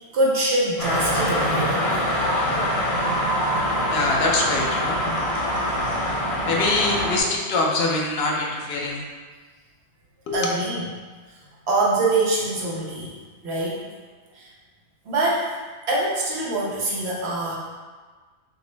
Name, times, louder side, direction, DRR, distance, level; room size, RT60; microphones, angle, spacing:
voice 1, 0.1-1.9 3.8-3.9 10.3-10.9 11.3-11.4 11.7-13.1 13.4-13.9 14.3-14.5 15.0-15.5 15.9-17.6, right 2 dB, 75° right, -5 dB, 1.1 m, -24 dB
sound 1, 0.8-7.2, equal, 35° left, 0.8 m, -24 dB
voice 2, 3.9-5.0 6.4-9.0 10.3-10.5, left 2 dB, 70° left, -1 dB, 0.9 m, -24 dB
5.8 x 2.0 x 3.2 m, 1.4 s
omnidirectional pair, 1.1 m